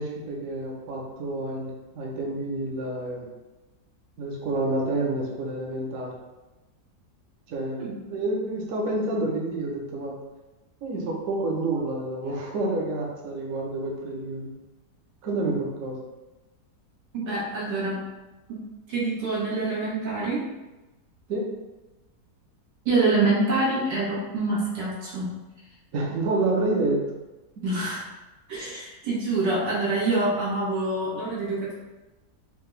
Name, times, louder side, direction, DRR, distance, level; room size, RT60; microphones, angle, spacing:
voice 1, 0.0-3.3 4.2-6.1 7.5-10.2 10.8-14.5 15.2-16.0 21.3-21.5 25.9-27.0, right 2 dB, 60° right, -1 dB, 1.0 m, -28 dB
voice 2, 17.1-18.0 18.5-18.6 18.9-20.4 22.9-25.3 27.6-28.0 28.5-31.7, right 2 dB, 90° right, -7 dB, 2.0 m, -26 dB
4.7 x 2.3 x 3.2 m, 1.1 s
omnidirectional pair, 1.8 m